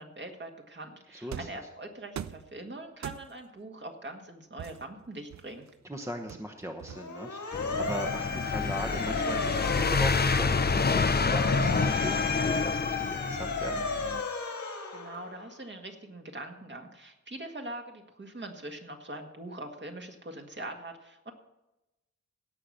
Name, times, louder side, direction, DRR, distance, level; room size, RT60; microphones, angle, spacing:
voice 1, 0.0-5.6 14.9-21.3, right 2 dB, 40° right, 3 dB, 1.8 m, -42 dB
voice 2, 1.1-1.5 5.8-13.8, equal, 10° right, 4 dB, 1.0 m, -39 dB
sound 1, 1.3-1.7 2.2-2.5 3.0-3.5 4.6-5.7 6.3-7.3, right 10 dB, 70° right, 0.4 m, -42 dB
Motor vehicle (road) / Siren, 6.9-15.5, left 4 dB, 75° left, 1.6 m, -34 dB
sound 2, 7.5-14.2, left 4 dB, 35° left, 0.6 m, -28 dB
17.0 x 5.9 x 6.5 m, 0.96 s
wide cardioid pair, 105°, 29 cm